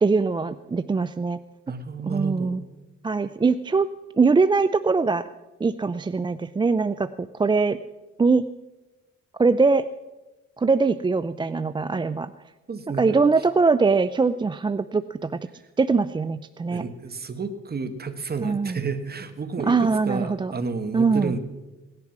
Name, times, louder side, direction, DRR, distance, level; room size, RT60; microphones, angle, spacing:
voice 1, 0.0-1.4 2.0-2.6 3.0-3.9 4.2-5.2 5.6-7.8 8.2-8.4 9.4-9.9 10.6-12.3 13.0-15.4 15.8-16.8 18.4-18.8 19.7-20.5 20.9-21.3, right 4 dB, 15° right, 13 dB, 0.4 m, -22 dB
voice 2, 1.7-2.6 12.7-13.2 16.7-21.4, right 4 dB, 30° right, 9 dB, 1.6 m, -31 dB
18.0 x 11.0 x 6.0 m, 1.1 s
cardioid pair, 90°, 30 cm